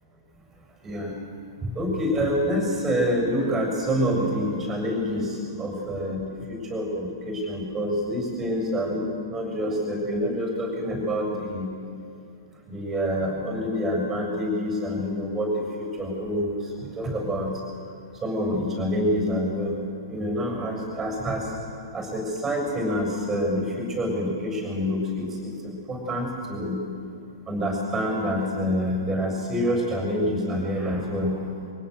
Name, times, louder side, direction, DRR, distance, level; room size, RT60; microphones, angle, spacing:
voice 1, 0.8-1.1 1.6-11.7 12.7-16.5 16.8-17.5 18.2-19.8 20.1-21.5 21.9-26.8 27.5-31.4, equal, 15° right, 1 dB, 7.1 m, -27 dB
24.0 x 17.0 x 8.1 m, 2.4 s
figure-of-eight pair, 115°, 2 cm